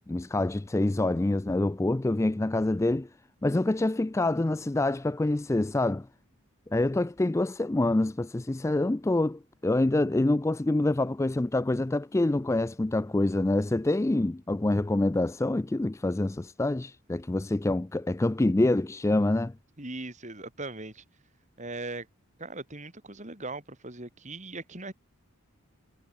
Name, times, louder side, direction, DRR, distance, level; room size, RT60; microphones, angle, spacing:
voice 1, 0.1-3.1 3.4-6.1 6.7-19.5, left 2 dB, 15° left, 0.3 m, -26 dB
voice 2, 19.8-21.0 21.6-22.1 22.4-24.9, right 2 dB, 35° right, 3.2 m, -39 dB
head